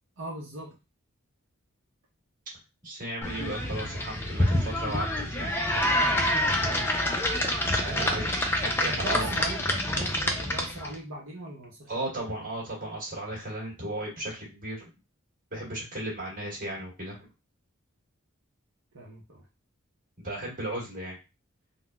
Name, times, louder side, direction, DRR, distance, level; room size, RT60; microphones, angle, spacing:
voice 1, 0.2-0.8 7.9-8.3 8.9-12.4 18.9-19.5, right 1 dB, 70° right, -3 dB, 0.7 m, -40 dB
voice 2, 2.8-5.5 7.4-9.3 11.9-14.9 15.5-17.2 20.2-21.2, right 1 dB, 40° right, -5 dB, 1.5 m, -35 dB
sound 1, 3.2-10.9, left 1 dB, 10° left, 0.4 m, -27 dB
3.7 x 2.1 x 2.2 m, 0.28 s
head